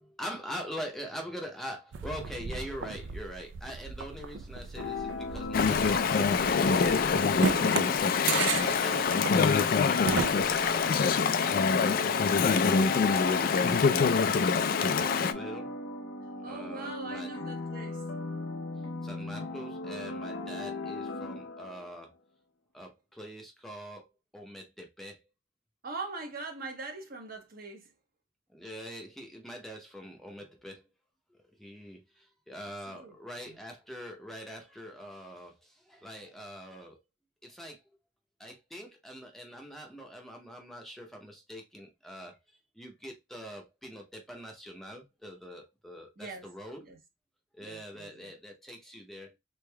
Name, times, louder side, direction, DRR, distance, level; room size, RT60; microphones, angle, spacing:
voice 1, 0.0-7.6 8.6-9.1 10.0-11.1 11.3-14.0 14.5-15.8 16.4-17.3 19.0-22.1 22.7-25.2 28.5-30.8 31.3-37.0 37.4-37.8 38.4-42.4 42.8-46.8 47.5-49.3, equal, ahead, 0.6 m, -44 dB
Horse Camp, 1.9-11.1, right 5 dB, 85° right, 0.4 m, -36 dB
sound 1, 4.8-22.0, left 2 dB, 90° left, 0.7 m, -38 dB
Chatter / Stream, 5.5-15.3, left 5 dB, 50° left, 0.3 m, -25 dB
voice 2, 8.4-9.1 10.1-10.6 16.4-18.1 25.8-27.9 32.9-33.1 33.4-33.6 46.2-46.5 46.8-47.0 47.6-48.3, right 3 dB, 50° right, 0.9 m, -42 dB
3.4 x 3.3 x 2.2 m
head